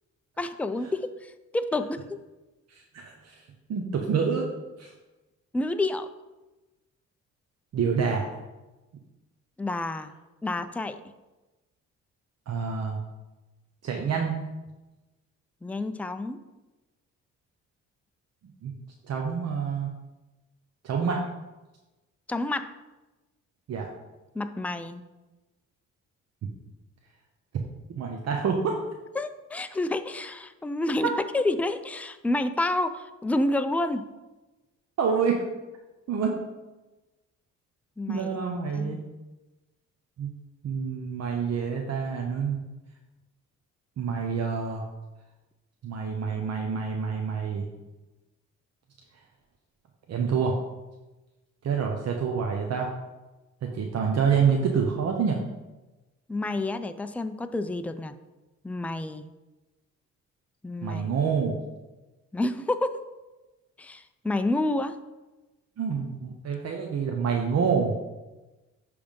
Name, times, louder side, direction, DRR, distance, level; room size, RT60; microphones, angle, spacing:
voice 1, 0.4-2.2 5.5-6.1 9.6-10.1 10.4-11.0 15.6-16.4 22.3-22.7 24.3-25.0 29.2-34.1 38.0-38.3 38.7-39.0 56.3-58.1 58.6-59.3 60.6-61.0 62.3-63.1 63.8-65.0, left 2 dB, 5° left, 9 dB, 0.4 m, -29 dB
voice 2, 2.7-3.4 3.7-4.5 4.8-4.9 7.7-8.3 12.5-13.0 13.8-14.4 18.6-18.7 19.1-19.9 20.8-21.3 23.7-23.9 27.9-28.8 31.0-31.1 35.0-35.4 36.1-36.4 38.1-39.0 40.2-40.3 40.6-42.6 44.0-44.9 45.8-47.7 50.1-50.6 51.6-52.9 53.6-55.4 60.8-61.5 65.8-67.9, right 6 dB, 55° right, 1 dB, 1.0 m, -27 dB
10.5 x 3.5 x 5.2 m, 1.1 s
cardioid pair, 90°, 30 cm